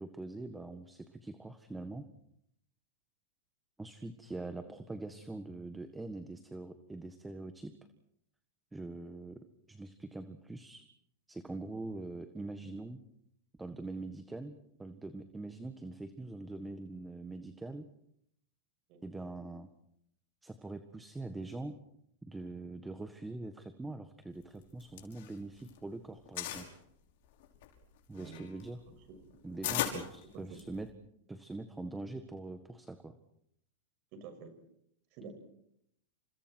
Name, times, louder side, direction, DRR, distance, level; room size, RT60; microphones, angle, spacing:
voice 1, 0.0-2.1 3.8-7.7 8.7-10.8 11.3-13.0 13.6-14.5 14.8-17.9 19.0-19.7 20.4-21.8 22.2-26.7 28.1-28.8 29.4-30.9 31.3-33.1, right 2 dB, 10° right, 9 dB, 1.6 m, -43 dB
voice 2, 18.9-19.2 28.1-28.4 29.1-29.2 29.6-29.8 30.2-30.7 34.1-34.6 35.1-35.3, right 5 dB, 50° right, 7 dB, 6.6 m, -49 dB
sound 1, 24.6-25.8 26.1-26.7 27.3-30.9, left 12 dB, 65° left, 5.5 m, -38 dB
30.0 x 28.0 x 4.7 m, 0.73 s
hypercardioid pair, 130°, 0 cm